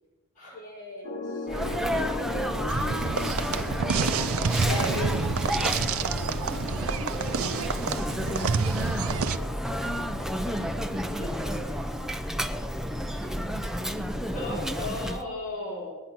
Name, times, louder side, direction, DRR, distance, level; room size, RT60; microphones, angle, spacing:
voice 1, 0.4-3.6 5.5-9.7 13.1-13.3, left 1 dB, 20° left, -5 dB, 6.3 m, -47 dB
sound 1, 1.0-15.0, left 2 dB, 65° left, 1.7 m, -41 dB
Sneeze, 1.5-15.2, equal, ahead, 0.6 m, -31 dB
sound 2, 2.7-9.4, right 5 dB, 75° right, 0.6 m, -28 dB
voice 2, 4.6-5.2 11.2-11.8 14.3-15.9, left 1 dB, 40° left, -7 dB, 6.5 m, -34 dB
20.5 x 9.7 x 5.9 m, 1.2 s
head